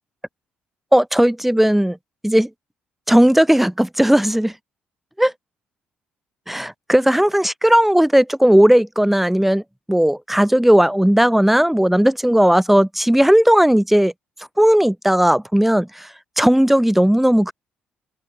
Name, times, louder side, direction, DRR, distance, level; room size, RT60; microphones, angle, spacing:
voice 1, 0.9-2.0 2.2-2.5 3.1-4.5 5.2-5.3 6.5-9.6 9.9-14.1 14.6-16.1 16.4-17.5, equal, 5° right, 1.3 m, -15 dB
open air
hypercardioid pair, 45°, 4 cm